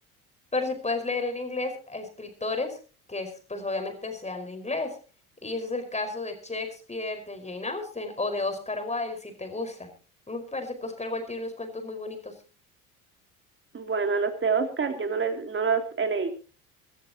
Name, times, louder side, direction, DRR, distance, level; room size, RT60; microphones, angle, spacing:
voice 1, 0.5-2.8 3.1-5.0 5.4-9.9 10.3-12.3, left 3 dB, 15° left, 6 dB, 5.2 m, -32 dB
voice 2, 13.7-16.3, right 5 dB, 25° right, 6 dB, 3.2 m, -26 dB
24.0 x 14.5 x 3.0 m, 0.35 s
hypercardioid pair, 65°, 44 cm